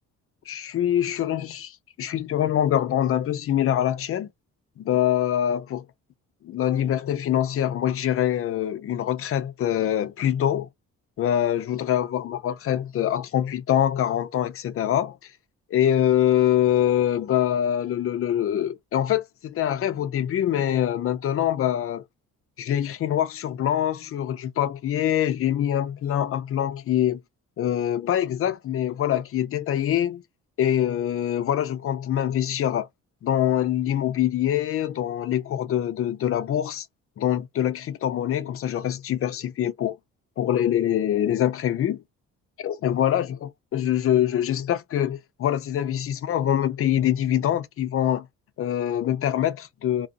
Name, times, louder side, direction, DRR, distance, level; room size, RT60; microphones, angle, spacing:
voice 1, 0.5-4.3 4.8-5.8 6.4-10.7 11.2-15.2 15.7-22.0 22.6-27.2 27.6-30.2 30.6-32.9 33.2-36.9 37.2-40.0 40.4-42.0 42.6-43.3 43.7-48.3 48.6-50.1, left 11 dB, 50° left, 0.4 m, -24 dB
2.7 x 2.1 x 2.5 m
cardioid pair, 95°, 30 cm